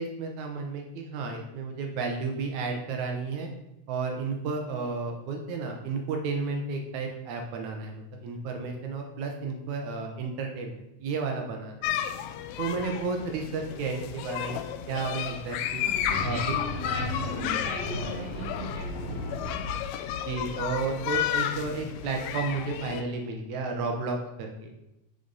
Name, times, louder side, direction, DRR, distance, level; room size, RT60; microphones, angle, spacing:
voice 1, 0.0-3.5 3.9-11.8 12.6-14.6 14.9-15.8 16.2-16.4 20.3-24.7, right 4 dB, 75° right, 3 dB, 2.2 m, -32 dB
sound 1, 11.8-23.0, left 10 dB, 80° left, 1.7 m, -32 dB
sound 2, 15.7-19.9, left 1 dB, 55° left, 2.9 m, -36 dB
voice 2, 15.8-19.5, equal, 20° left, -7 dB, 1.5 m, -39 dB
6.9 x 6.7 x 4.0 m, 0.88 s
omnidirectional pair, 3.6 m